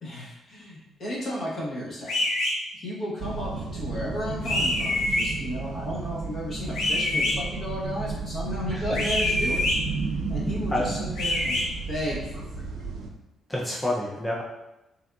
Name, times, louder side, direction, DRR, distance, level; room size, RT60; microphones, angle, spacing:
voice 1, 0.0-2.2 2.7-9.6 10.3-11.6 11.9-12.7, equal, 50° left, -4 dB, 1.0 m, -33 dB
sound 1, 2.1-2.5 4.5-5.3 6.7-7.3 8.9-9.8 11.2-11.6, left 2 dB, 70° left, 0.7 m, -25 dB
sound 2, 3.2-13.1, right 4 dB, 85° right, 0.4 m, -33 dB
voice 2, 13.5-14.4, left 1 dB, 10° left, -4 dB, 0.4 m, -28 dB
3.4 x 2.5 x 2.3 m, 0.94 s
cardioid pair, 90°, 0 cm